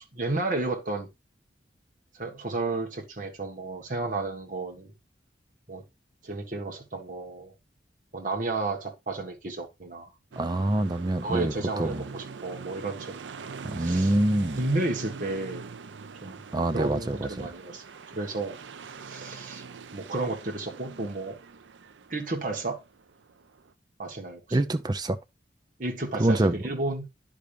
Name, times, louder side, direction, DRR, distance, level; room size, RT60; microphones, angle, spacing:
voice 1, 0.1-1.1 2.1-4.9 5.7-5.8 6.2-7.5 8.1-10.1 11.2-13.2 13.8-14.1 14.6-15.7 16.2-16.4 16.7-17.8 18.1-18.6 19.0-19.6 19.9-21.4 22.1-22.8 24.0-24.6 25.8-27.1, right 2 dB, 45° right, 1.5 m, -32 dB
sound 1, 10.3-23.7, right 5 dB, 90° right, 0.5 m, -43 dB
voice 2, 10.4-12.0 13.6-14.6 16.5-17.5 24.5-25.2 26.2-26.6, right 1 dB, 20° right, 0.6 m, -26 dB
10.5 x 5.1 x 2.6 m
head